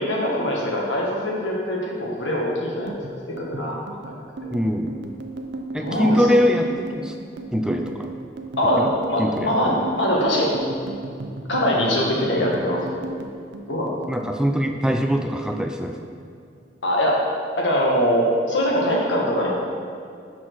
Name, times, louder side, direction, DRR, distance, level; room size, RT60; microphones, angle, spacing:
voice 1, 0.0-3.0 3.4-4.2 4.4-4.5 5.8-6.3 8.6-10.6 11.5-13.2 13.7-13.9 16.8-17.2 17.6-19.5, equal, 90° left, -3 dB, 1.5 m, -23 dB
sound 1, 2.7-15.3 15.5-16.6 16.9-17.2 17.5-18.2, right 2 dB, 65° right, 0.6 m, -35 dB
voice 2, 4.5-5.0 5.7-7.1 7.5-8.1 8.8-8.9 9.2-9.5 14.1-16.0, equal, 5° right, 4 dB, 0.3 m, -22 dB
6.2 x 5.9 x 4.6 m, 2.4 s
head